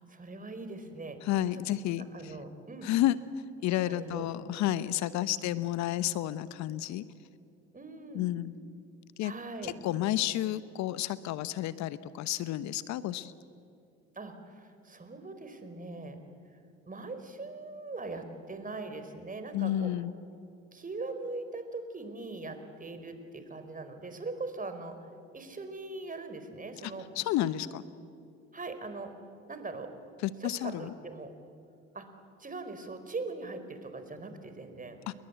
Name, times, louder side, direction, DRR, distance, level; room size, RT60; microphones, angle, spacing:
voice 1, 0.1-1.2 2.1-2.9 3.9-4.3 4.9-5.0 5.4-5.5 7.7-8.3 9.2-9.7 14.1-16.2 16.9-19.9 20.7-25.0 25.3-27.1 28.5-29.1 29.5-29.9 30.4-31.3 31.9-32.1 32.4-35.0, right 3 dB, 25° right, 8 dB, 4.7 m, -41 dB
voice 2, 1.2-2.4 2.8-3.2 3.6-7.0 8.1-8.5 9.2-9.3 9.6-13.3 19.5-20.1 26.8-27.8 30.2-30.9 35.1-35.2, left 13 dB, 60° left, 16 dB, 1.0 m, -31 dB
29.5 x 22.0 x 8.2 m, 2.5 s
hypercardioid pair, 60°, 31 cm